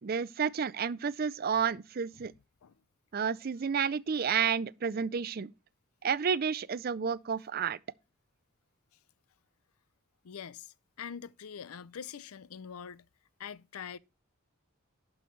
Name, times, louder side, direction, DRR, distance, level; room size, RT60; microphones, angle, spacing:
voice 1, 0.0-2.3 3.1-5.5 6.0-7.8, right 6 dB, 45° right, 0.4 m, -31 dB
voice 2, 10.2-13.0 13.4-14.0, left 7 dB, 90° left, 0.5 m, -44 dB
11.5 x 6.1 x 3.2 m
head